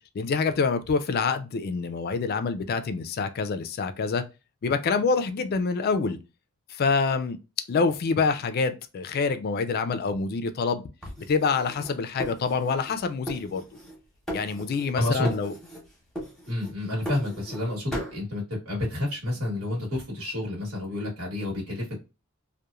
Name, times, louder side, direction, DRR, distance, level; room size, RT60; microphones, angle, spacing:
voice 1, 0.1-4.2 4.6-6.2 6.7-7.4 7.7-10.8 11.3-13.6 14.3-15.5, left 4 dB, 45° left, 0.3 m, -26 dB
sound 1, 11.0-13.0 13.3-14.0 14.3-15.0 15.2-15.9 16.2-17.6 17.9-18.2, equal, ahead, 0.8 m, -37 dB
voice 2, 14.9-15.3 16.5-22.0, left 1 dB, 65° right, 1.2 m, -29 dB
2.9 x 2.1 x 2.3 m
head